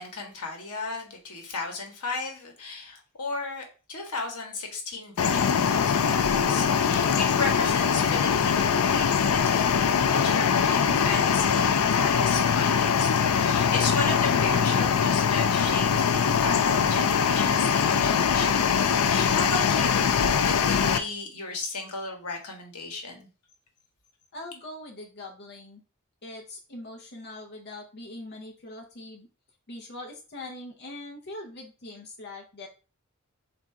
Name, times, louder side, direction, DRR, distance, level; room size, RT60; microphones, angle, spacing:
voice 1, 0.0-13.1 13.3-23.3, left 3 dB, 90° left, 2 dB, 1.2 m, -35 dB
sound 1, 5.2-21.0, left 7 dB, 70° left, 0.4 m, -22 dB
voice 2, 24.3-25.8 26.2-29.3 29.7-32.7, left 2 dB, 50° left, 0 dB, 0.7 m, -42 dB
3.6 x 2.6 x 4.4 m, 0.34 s
head